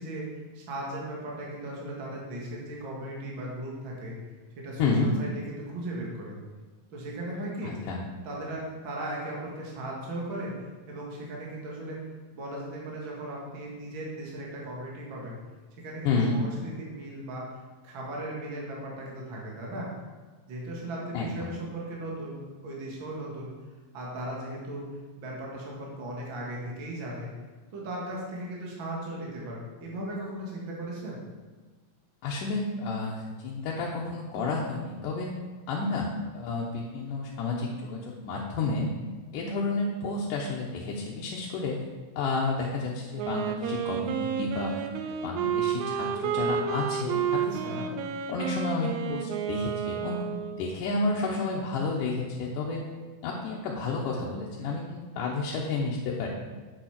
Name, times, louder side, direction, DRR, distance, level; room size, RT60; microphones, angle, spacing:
voice 1, 0.0-4.2 4.6-6.4 6.9-7.7 8.2-10.5 10.9-12.0 12.3-15.4 15.8-19.9 20.5-22.4 22.6-23.5 23.9-24.8 25.2-27.3 27.7-31.2 47.5-47.9, right 1 dB, 40° right, -3 dB, 2.4 m, -37 dB
voice 2, 4.8-5.1 7.6-8.0 16.0-16.4 21.1-21.6 32.2-35.3 35.7-38.9 39.3-41.9 42.2-44.8 45.2-48.0 48.3-50.2 50.6-52.8 53.2-56.3, left 3 dB, 75° left, -3 dB, 2.4 m, -31 dB
Wind instrument woodwind instrument, 43.2-50.8, right 7 dB, 75° right, 1.8 m, -31 dB
8.0 x 7.4 x 5.9 m, 1.4 s
omnidirectional pair, 3.9 m